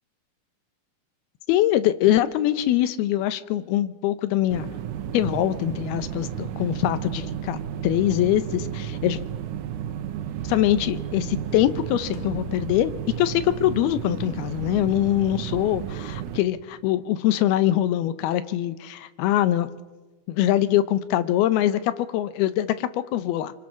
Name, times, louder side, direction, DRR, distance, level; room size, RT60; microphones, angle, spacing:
voice 1, 1.5-4.7 5.1-9.2 10.4-12.9 13.2-19.7 20.3-23.5, left 13 dB, 90° left, 13 dB, 2.9 m, -23 dB
sound 1, 4.5-16.4, right 10 dB, 70° right, 2.1 m, -33 dB
sound 2, 12.1-14.7, left 7 dB, 70° left, 2.3 m, -42 dB
25.0 x 25.0 x 6.3 m, 1.2 s
omnidirectional pair, 4.3 m